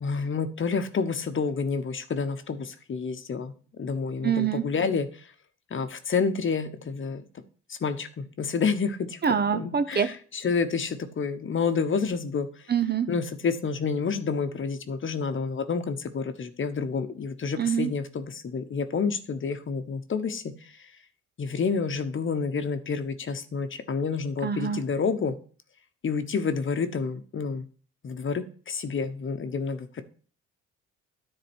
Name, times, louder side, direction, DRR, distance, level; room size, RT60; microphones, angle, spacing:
voice 1, 0.0-5.1 5.7-7.2 7.7-9.2 9.5-12.5 13.1-20.5 21.4-25.4 26.0-27.7 28.0-30.0, left 5 dB, 40° left, 8 dB, 1.0 m, -29 dB
voice 2, 4.2-4.6 9.2-10.1 12.7-13.1 17.6-17.9 24.4-24.8, right 7 dB, 35° right, 11 dB, 0.7 m, -25 dB
10.0 x 3.8 x 6.1 m, 0.42 s
cardioid pair, 90°, 30 cm